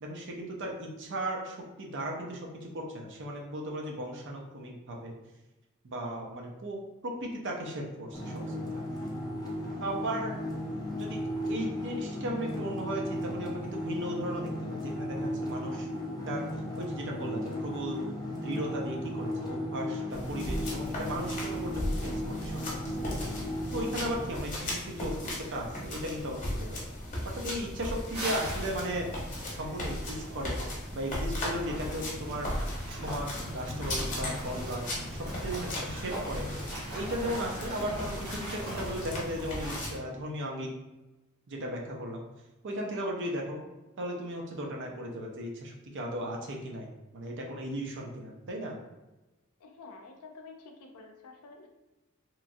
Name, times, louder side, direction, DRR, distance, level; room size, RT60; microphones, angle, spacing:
voice 1, 0.0-5.1 5.8-6.8 7.0-8.8 9.8-10.5 10.8-11.2 11.4-15.9 16.3-16.4 16.8-18.0 18.3-23.3 23.7-26.8 27.3-29.1 29.5-30.6 30.9-32.5 32.9-34.9 35.3-36.5 36.9-40.7 41.5-42.2 42.6-43.6 44.0-48.7, right 1 dB, 55° right, 0 dB, 0.6 m, -36 dB
sound 1, 8.1-24.2, left 1 dB, 15° left, 0.5 m, -35 dB
sound 2, 20.1-40.0, left 1 dB, 35° left, 0.8 m, -37 dB
sound 3, 28.1-39.8, right 1 dB, 75° right, 1.2 m, -42 dB
voice 2, 49.6-51.7, left 3 dB, 85° left, 3 dB, 0.5 m, -49 dB
3.0 x 2.4 x 2.5 m, 1.0 s
head